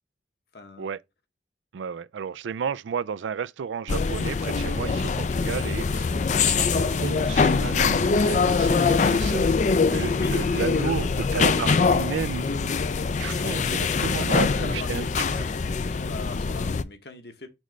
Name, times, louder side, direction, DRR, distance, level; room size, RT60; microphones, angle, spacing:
voice 1, 0.5-0.9 5.8-6.1 10.1-10.4 10.7-11.2 14.0-15.5 15.8-17.5, left 3 dB, 60° left, 1.1 m, -40 dB
voice 2, 1.7-6.1 6.4-12.8 13.1-15.0, right 6 dB, 85° right, 0.4 m, -32 dB
sound 1, 3.9-16.8, left 4 dB, 40° left, 0.4 m, -23 dB
6.2 x 3.1 x 5.1 m
head